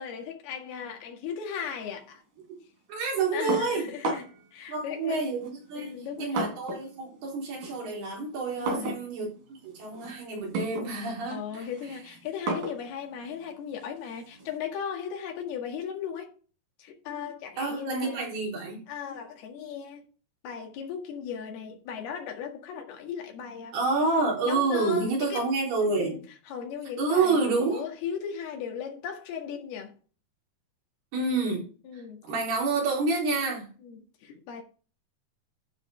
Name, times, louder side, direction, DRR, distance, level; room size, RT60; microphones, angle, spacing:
voice 1, 0.0-2.2 3.3-5.2 5.8-6.4 8.6-9.0 11.3-16.3 16.8-18.3 18.9-20.0 20.4-23.8 24.4-25.5 25.8-26.2 26.5-29.9 31.9-32.4 33.8-34.6, left 7 dB, 80° left, 3.8 m, -37 dB
voice 2, 2.9-3.9 4.7-11.7 17.6-18.9 23.7-26.2 27.0-27.8 31.1-31.7 32.3-33.7, right 3 dB, 90° right, 5.8 m, -28 dB
sound 1, 3.5-4.5 5.4-7.0 7.3-14.6, right 2 dB, 55° right, 4.4 m, -35 dB
12.0 x 5.3 x 4.9 m
omnidirectional pair, 4.4 m